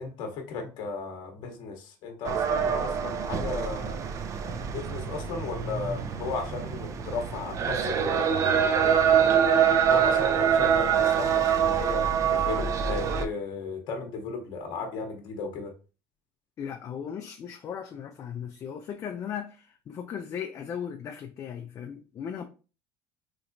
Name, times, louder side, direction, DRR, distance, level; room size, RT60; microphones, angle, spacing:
voice 1, 0.0-4.0 4.4-8.3 8.8-15.7, left 4 dB, 60° left, 0.8 m, -36 dB
sound 1, 2.2-13.3, right 7 dB, 35° right, 0.4 m, -25 dB
voice 2, 16.6-22.4, left 8 dB, 35° left, 0.4 m, -37 dB
3.3 x 2.9 x 2.6 m
cardioid pair, 125°, 9 cm